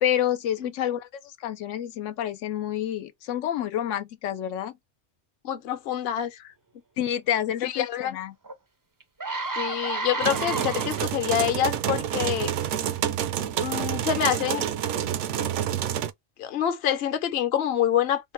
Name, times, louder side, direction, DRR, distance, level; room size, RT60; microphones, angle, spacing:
voice 1, 0.0-4.7 7.0-8.3, left 10 dB, 90° left, 1.0 m, -28 dB
voice 2, 5.4-6.4 7.6-8.2 9.6-12.5 13.6-14.6 16.4-18.3, left 10 dB, 60° left, 0.9 m, -26 dB
sound 1, 8.4-8.5 9.0-11.4 12.0-12.3, right 3 dB, 30° right, 0.3 m, -31 dB
sound 2, 10.2-16.1, right 10 dB, 75° right, 0.9 m, -28 dB
3.8 x 2.2 x 4.2 m
omnidirectional pair, 1.2 m